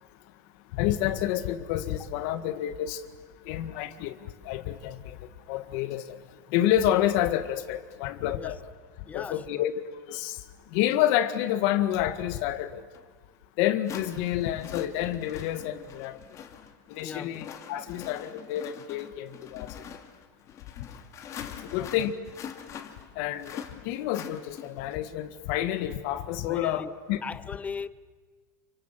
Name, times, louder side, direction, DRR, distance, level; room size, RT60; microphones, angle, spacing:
voice 1, 0.7-3.0 3.5-6.2 6.5-8.6 9.1-10.4 10.7-12.8 13.6-16.2 16.9-19.8 21.6-22.1 23.2-27.2, left 12 dB, 60° left, 1.8 m, -29 dB
voice 2, 9.1-9.7 17.0-17.4 21.7-22.1 26.5-26.9 27.2-27.9, left 5 dB, 15° left, 0.7 m, -39 dB
sound 1, 12.9-13.0 13.8-24.9, left 8 dB, 35° left, 2.4 m, -44 dB
29.0 x 25.5 x 7.6 m
supercardioid pair, 140°, 9 cm